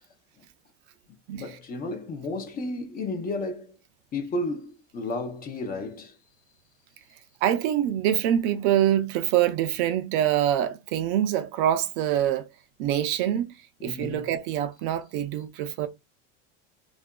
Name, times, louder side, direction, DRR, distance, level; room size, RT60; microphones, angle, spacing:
voice 1, 1.3-3.8 4.1-6.2 13.8-14.3, left 2 dB, 25° left, 0.5 m, -32 dB
voice 2, 7.4-12.5 12.8-13.5 13.8-15.9, right 11 dB, 65° right, 0.5 m, -25 dB
2.7 x 2.3 x 2.2 m
supercardioid pair, 135°, 36 cm